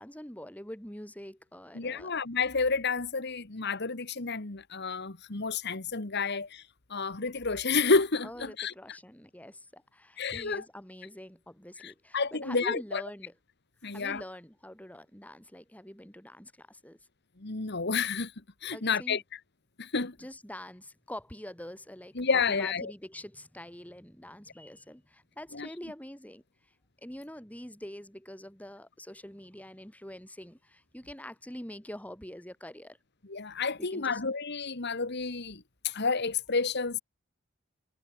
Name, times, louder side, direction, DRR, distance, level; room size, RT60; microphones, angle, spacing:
voice 1, 0.0-2.1 8.2-13.3 13.8-17.0 18.7-19.2 20.2-26.4 27.0-33.0 33.8-34.2, left 1 dB, 10° left, 7.3 m, -45 dB
voice 2, 1.8-6.7 6.9-8.7 10.2-10.6 11.8-13.0 13.8-14.2 17.4-18.3 18.6-19.2 19.8-20.2 22.2-22.9 25.5-25.7 33.3-37.0, left 4 dB, 55° left, 1.7 m, -30 dB
head